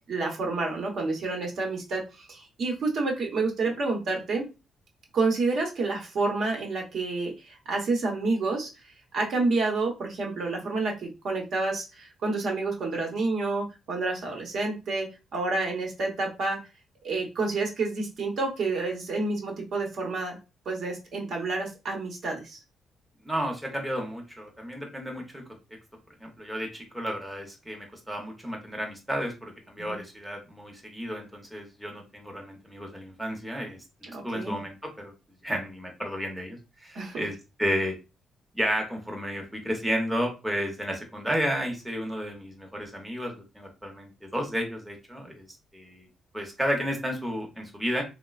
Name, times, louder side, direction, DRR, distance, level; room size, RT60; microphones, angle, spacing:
voice 1, 0.1-4.5 5.1-8.7 9.1-16.6 17.0-20.4 20.6-22.6 29.9-30.0 34.1-34.6 36.9-37.2, right 3 dB, 60° right, 1 dB, 0.8 m, -29 dB
voice 2, 23.2-25.4 26.2-35.1 35.4-37.3 37.6-38.0 38.5-45.4 45.7-46.1 46.3-48.0, equal, 5° right, 1 dB, 0.6 m, -32 dB
3.1 x 2.1 x 2.3 m, 0.28 s
cardioid pair, 120°, 0 cm